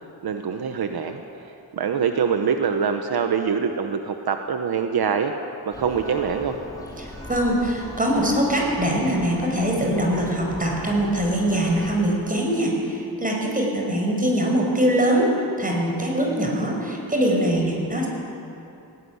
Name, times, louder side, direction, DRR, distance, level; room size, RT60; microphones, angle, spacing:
voice 1, 0.2-1.2 1.7-5.3 5.7-6.6, right 6 dB, 75° right, 6 dB, 1.2 m, -24 dB
Church bell, 5.7-12.0, left 1 dB, 10° left, 3.6 m, -39 dB
voice 2, 7.0-15.3 15.6-18.1, right 1 dB, 20° right, -1 dB, 5.7 m, -22 dB
18.5 x 18.0 x 9.6 m, 2.8 s
wide cardioid pair, 125°, 38 cm